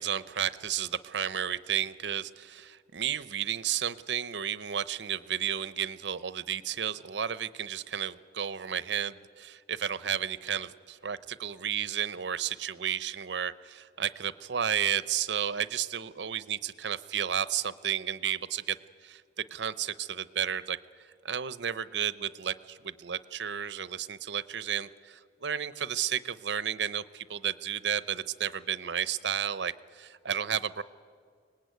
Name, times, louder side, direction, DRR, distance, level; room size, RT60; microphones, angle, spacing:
voice 1, 0.0-18.8 19.0-30.8, right 9 dB, 70° right, 16 dB, 0.7 m, -32 dB
23.5 x 19.0 x 9.2 m, 2.1 s
head